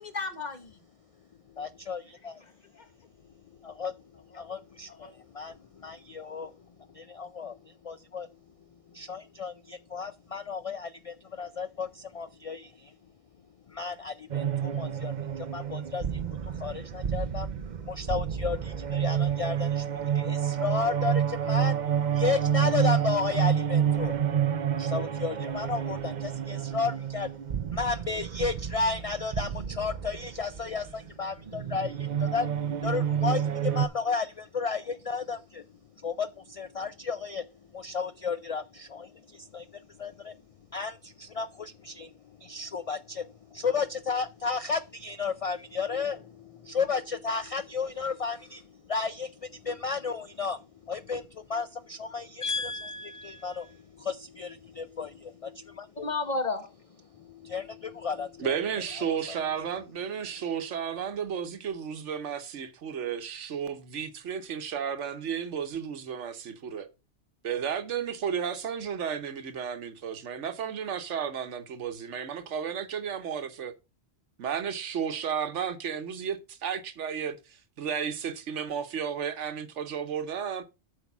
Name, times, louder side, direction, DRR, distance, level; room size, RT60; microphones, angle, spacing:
voice 1, 0.0-0.7 2.7-2.8 4.3-4.4 5.0-5.1 52.4-53.7 56.0-56.7, left 3 dB, 40° left, 1.2 m, -33 dB
voice 2, 1.6-2.4 3.6-3.9 4.4-6.5 6.9-8.3 8.9-12.9 13.7-17.5 17.8-21.8 22.1-24.1 24.7-27.3 27.7-32.5 32.8-35.6 36.0-37.5 37.7-40.4 40.7-52.7 53.2-55.6 57.1-58.6 59.3-59.4, left 5 dB, 70° left, 0.3 m, -33 dB
sound 1, 14.3-33.9, right 9 dB, 45° right, 0.7 m, -29 dB
voice 3, 58.4-66.9 67.4-73.7 74.4-80.6, right 7 dB, 85° right, 1.3 m, -33 dB
8.1 x 4.7 x 6.0 m
omnidirectional pair, 1.2 m